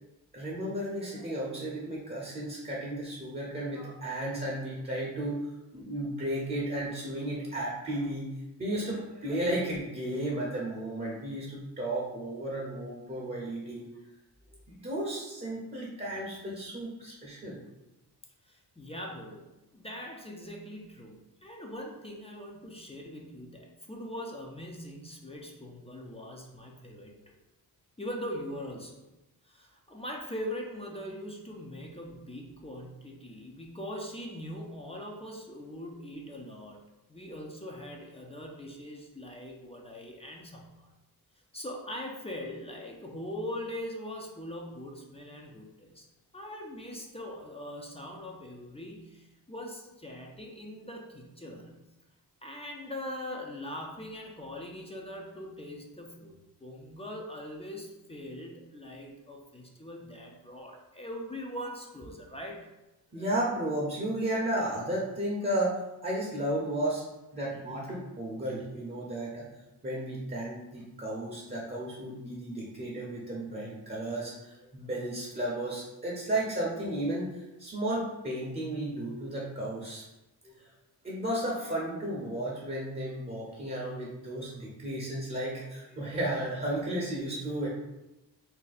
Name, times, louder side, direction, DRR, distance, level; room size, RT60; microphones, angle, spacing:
voice 1, 0.3-5.4 5.7-8.3 8.6-13.8 14.7-17.6 63.1-65.7 66.0-67.0 67.3-69.5 69.8-80.0 80.4-80.6 81.0-87.7, right 1 dB, 25° right, -4 dB, 0.7 m, -33 dB
voice 2, 18.4-27.1 28.0-29.1 29.4-36.8 37.1-40.9 41.5-46.1 46.3-51.8 52.4-62.7, left 1 dB, 15° left, -1 dB, 0.5 m, -41 dB
2.7 x 2.2 x 4.0 m, 1.0 s
cardioid pair, 85°, 40 cm